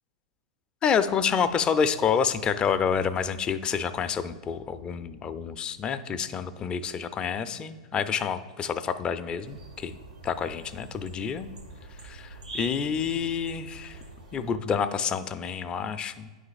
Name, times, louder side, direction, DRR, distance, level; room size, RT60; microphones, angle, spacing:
voice 1, 0.8-10.0 10.2-11.5 12.0-14.0 14.3-16.3, left 7 dB, 25° left, 10 dB, 0.3 m, -28 dB
sound 1, 9.4-14.6, right 3 dB, 85° right, 1.0 m, -44 dB
8.9 x 3.2 x 4.0 m, 1.4 s
hypercardioid pair, 120°, 4 cm